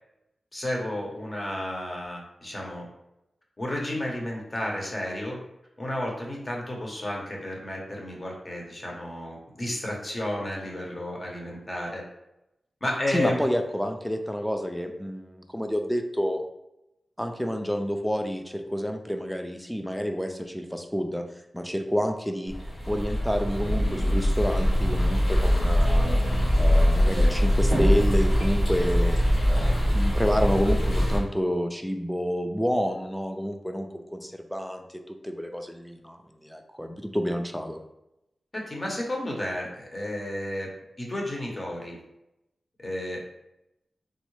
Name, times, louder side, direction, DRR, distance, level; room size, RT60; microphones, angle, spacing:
voice 1, 0.5-2.9 3.6-5.4 5.8-12.0 12.8-13.4 38.5-40.7 41.0-42.0 42.8-43.2, left 1 dB, 40° left, -1 dB, 0.9 m, -32 dB
voice 2, 13.1-16.4 17.2-21.2 21.5-22.6 22.9-26.2 26.6-29.2 29.5-37.8, equal, ahead, 5 dB, 0.4 m, -29 dB
sound 1, 22.5-31.2, equal, 90° left, 1.4 m, -22 dB
3.6 x 2.0 x 3.1 m, 0.88 s
cardioid pair, 55°, 0 cm